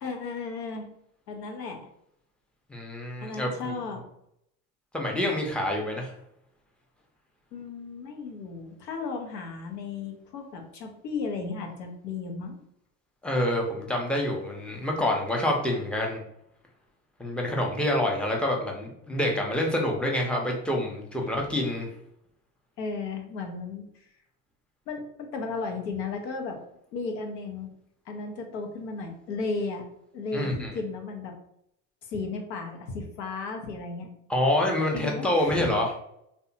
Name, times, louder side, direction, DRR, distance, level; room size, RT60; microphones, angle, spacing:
voice 1, 0.0-0.8 1.3-1.9 3.2-4.0 7.5-12.5 21.3-21.4 22.8-23.8 24.9-26.6 26.9-27.7 28.1-29.8 30.1-31.3 32.0-34.1 34.9-35.7, left 4 dB, 90° left, 3 dB, 0.7 m, -34 dB
voice 2, 2.7-3.7 4.9-6.1 13.2-16.2 17.2-21.9 30.3-30.7 34.3-35.9, left 1 dB, ahead, -1 dB, 0.4 m, -27 dB
2.7 x 2.3 x 2.6 m, 0.75 s
hypercardioid pair, 80°, 48 cm